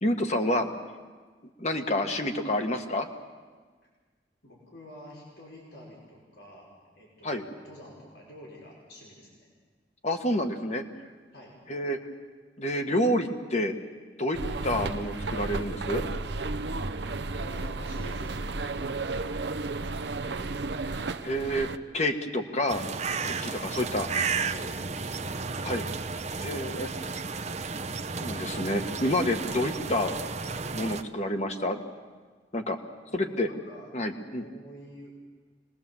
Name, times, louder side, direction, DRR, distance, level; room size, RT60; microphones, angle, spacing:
voice 1, 0.0-0.7 1.6-3.1 7.2-7.4 10.0-10.8 11.7-12.0 12.6-13.7 14.2-14.4 14.6-16.1 21.2-21.7 21.9-22.8 23.2-24.1 25.6-25.9 26.4-27.2 28.2-30.1 30.7-31.8 32.5-32.8 33.1-33.5 33.9-34.4, left 1 dB, 40° left, 5 dB, 1.7 m, -28 dB
voice 2, 4.4-6.7 7.0-9.5 11.3-11.6 14.4-14.6 17.1-20.1 24.3-25.2 33.1-33.9 34.4-35.1, equal, 85° left, -4 dB, 5.5 m, -48 dB
sound 1, 14.3-21.8, right 3 dB, 70° right, 0.8 m, -33 dB
sound 2, 22.7-31.0, right 4 dB, 40° right, 0.8 m, -33 dB
26.5 x 20.5 x 7.3 m, 1.5 s
head